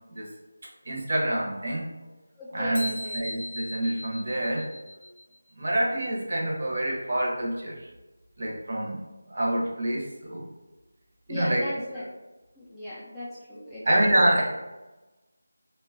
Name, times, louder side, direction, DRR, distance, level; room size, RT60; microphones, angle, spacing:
voice 1, 0.9-1.9 2.5-4.7 5.6-7.9 8.4-10.5 11.3-11.6 13.6-14.4, right 1 dB, 50° right, -2 dB, 0.7 m, -27 dB
voice 2, 2.4-3.4 11.3-12.1 12.6-14.0, left 1 dB, ahead, -15 dB, 0.3 m, -37 dB
sound 1, 2.8-5.4, left 1 dB, 70° left, 0.4 m, -38 dB
2.9 x 2.2 x 2.4 m, 1.1 s
figure-of-eight pair, 170°, 0 cm